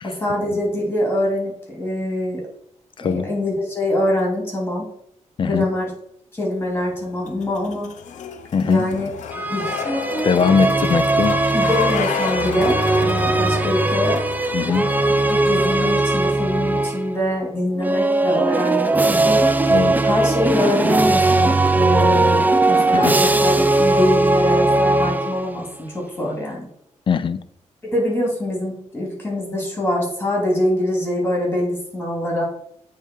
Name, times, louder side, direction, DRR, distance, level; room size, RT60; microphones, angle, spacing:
voice 1, 0.0-2.4 3.0-4.9 5.4-5.9 6.3-7.9 8.6-9.1 9.5-9.7 11.5-14.2 15.3-19.4 20.0-25.7 25.9-26.7 27.8-32.4, left 1 dB, 15° left, -2 dB, 2.8 m, -24 dB
voice 2, 3.0-3.3 5.4-5.7 8.5-8.9 10.2-11.4 14.5-14.9 19.7-20.0 22.9-23.2 27.1-27.4, left 6 dB, 45° left, 12 dB, 0.5 m, -20 dB
sound 1, 6.6-15.9, left 7 dB, 85° left, 0.7 m, -30 dB
sound 2, 9.3-17.2 17.8-25.7, right 2 dB, 15° right, 0.4 m, -19 dB
8.6 x 3.5 x 4.5 m, 0.70 s
wide cardioid pair, 125°, 12 cm